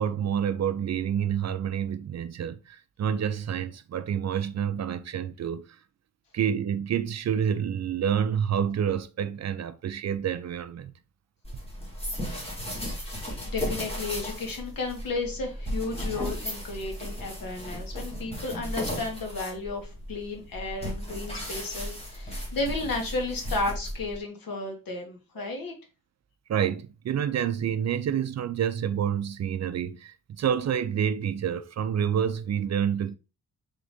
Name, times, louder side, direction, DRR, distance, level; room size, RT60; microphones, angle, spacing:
voice 1, 0.0-5.8 6.3-10.9 25.4-25.5 26.5-33.2, right 8 dB, 50° right, 0.4 m, -28 dB
sound 1, 11.4-24.2, equal, 15° left, 1.8 m, -35 dB
voice 2, 13.5-25.7, left 3 dB, 75° left, 1.6 m, -33 dB
3.9 x 3.7 x 3.5 m
wide cardioid pair, 140°, 34 cm